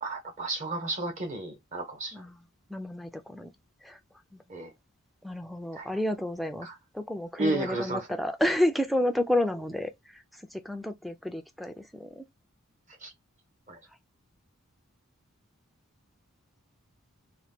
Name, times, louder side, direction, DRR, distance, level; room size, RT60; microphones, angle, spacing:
voice 1, 0.0-2.2 4.5-4.7 5.7-5.9 6.6-6.7 7.4-8.1 13.0-13.1 13.7-13.8, right 2 dB, 35° right, 0.8 m, -32 dB
voice 2, 2.1-2.4 2.7-3.5 3.8-4.0 4.3-4.4 5.2-6.7 6.9-12.2, left 1 dB, ahead, 0.3 m, -30 dB
2.8 x 2.2 x 3.4 m
head